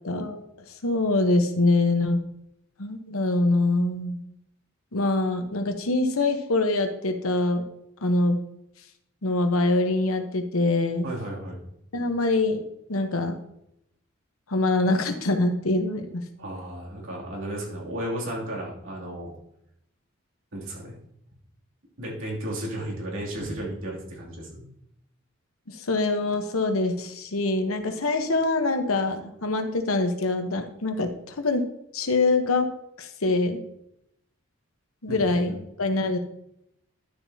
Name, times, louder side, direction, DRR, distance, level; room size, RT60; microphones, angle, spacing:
voice 1, 0.0-0.4 0.8-2.2 2.8-4.2 4.9-7.6 8.0-8.4 9.2-11.1 11.9-12.6 12.9-13.4 14.5-16.2 25.7-31.6 31.9-32.7 33.0-33.6 35.0-36.2, left 2 dB, 85° left, 7 dB, 1.1 m, -24 dB
voice 2, 11.0-11.6 16.4-19.3 20.5-20.9 22.0-24.6 35.1-35.2 35.5-35.6, right 1 dB, 70° right, -4 dB, 2.8 m, -34 dB
11.5 x 7.1 x 2.8 m, 0.79 s
head